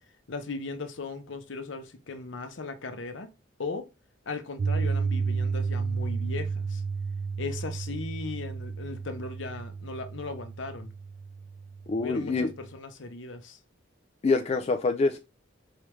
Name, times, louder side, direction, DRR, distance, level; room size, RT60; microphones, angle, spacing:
voice 1, 0.3-3.3 3.6-3.9 4.3-6.8 7.4-10.9 12.0-13.6, left 3 dB, 65° left, 0.7 m, -37 dB
Piano, 4.6-12.7, right 5 dB, 65° right, 0.4 m, -32 dB
voice 2, 11.9-12.5 14.2-15.2, left 3 dB, 30° left, 0.3 m, -25 dB
4.7 x 3.3 x 3.1 m
head